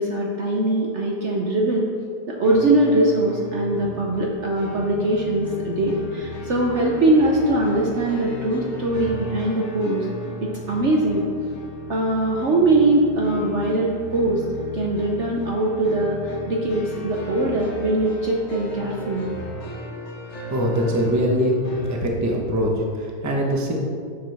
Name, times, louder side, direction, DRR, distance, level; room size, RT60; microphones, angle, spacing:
voice 1, 0.0-1.9 2.3-10.1 10.4-11.3 11.9-14.4 14.7-19.3, right 2 dB, 55° right, -1 dB, 0.9 m, -21 dB
sound 1, 2.4-22.0, left 2 dB, 45° left, 1.3 m, -36 dB
voice 2, 20.5-21.6 21.9-22.7 23.0-23.7, equal, 15° right, -1 dB, 0.7 m, -22 dB
10.0 x 6.8 x 3.4 m, 2.2 s
omnidirectional pair, 1.8 m